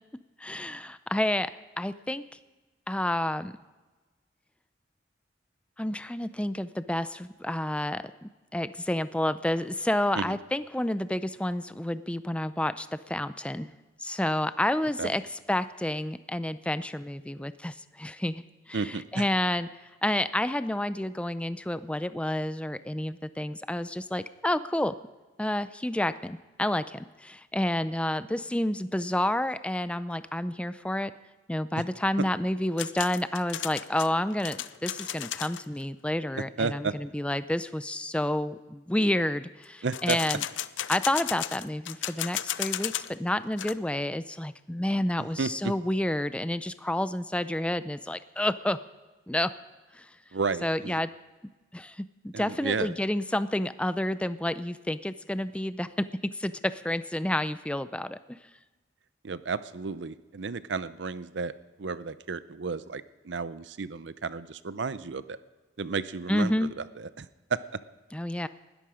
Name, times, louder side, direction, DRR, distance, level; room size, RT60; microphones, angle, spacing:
voice 1, 0.4-1.5 1.8-2.2 2.9-3.5 5.8-13.7 14.0-15.2 15.5-19.7 20.0-25.0 25.4-31.1 31.5-40.4 40.9-48.8 49.3-49.5 49.9-50.1 50.6-51.1 51.7-58.4 66.3-66.7 68.1-68.5, left 1 dB, 5° left, 13 dB, 0.5 m, -29 dB
voice 2, 18.7-19.3 36.3-37.0 39.8-40.2 45.2-45.7 50.3-51.0 52.3-52.9 59.2-61.5 61.8-65.4 65.8-66.7 67.0-67.8, right 4 dB, 70° right, 15 dB, 0.7 m, -32 dB
sound 1, 32.8-35.7 39.9-43.2 43.4-43.7, left 12 dB, 85° left, 0.5 m, -34 dB
19.5 x 13.5 x 5.0 m, 1.2 s
head